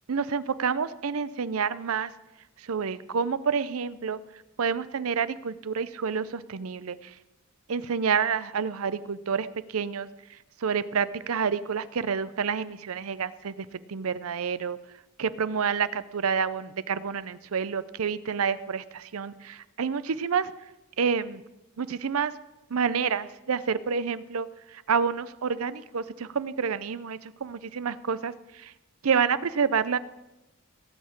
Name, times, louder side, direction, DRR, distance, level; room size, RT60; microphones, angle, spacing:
voice 1, 0.1-2.1 2.6-4.2 4.6-7.1 7.7-10.1 10.6-14.8 15.2-20.5 21.0-21.4 21.8-22.3 22.7-28.7 29.0-30.0, right 6 dB, 85° right, 16 dB, 0.6 m, -28 dB
17.0 x 6.4 x 8.6 m, 0.98 s
head